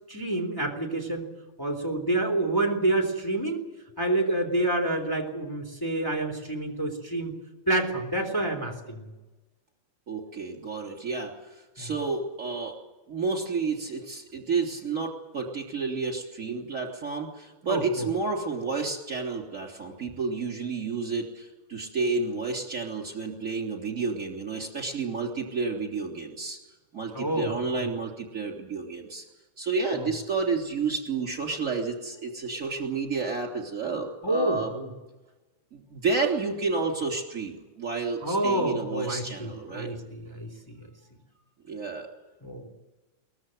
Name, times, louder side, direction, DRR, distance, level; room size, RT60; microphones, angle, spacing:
voice 1, 0.1-1.3 1.6-3.6 4.0-7.3 7.7-9.1 11.8-11.9 17.7-18.1 27.1-27.9 30.0-30.1 34.2-34.9 38.2-40.5 40.8-40.9 42.4-42.7, right 2 dB, 10° left, 1 dB, 3.5 m, -28 dB
voice 2, 10.1-12.8 13.1-26.6 26.9-29.2 29.6-34.7 35.7-39.9 41.7-42.1, right 4 dB, 40° right, 1 dB, 3.7 m, -30 dB
23.0 x 20.0 x 7.9 m, 1.1 s
omnidirectional pair, 2.2 m